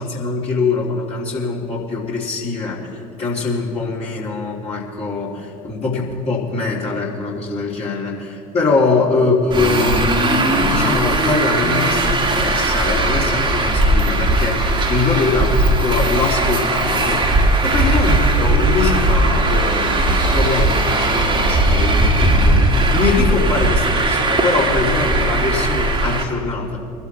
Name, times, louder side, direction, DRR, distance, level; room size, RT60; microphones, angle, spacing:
voice 1, 0.0-26.8, left 4 dB, 35° left, -4 dB, 3.2 m, -22 dB
Traffic noise roadway noise, 9.5-26.2, right 2 dB, 25° right, 1.8 m, -18 dB
24.0 x 12.0 x 3.2 m, 2.5 s
figure-of-eight pair, 65°, 19 cm